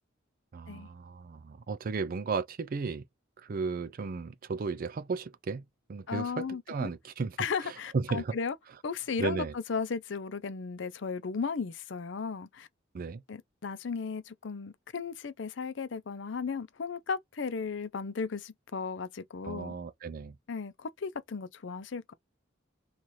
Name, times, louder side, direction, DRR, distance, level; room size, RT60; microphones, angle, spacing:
voice 1, 0.5-3.0 3.4-5.6 5.9-7.4 7.9-8.3 9.2-9.5 12.9-13.2 19.5-20.4, right 4 dB, 50° right, 0.4 m, -34 dB
voice 2, 6.1-6.9 7.4-8.6 8.8-12.7 13.3-19.7 20.5-22.1, left 5 dB, 70° left, 0.5 m, -35 dB
3.1 x 2.4 x 4.1 m
head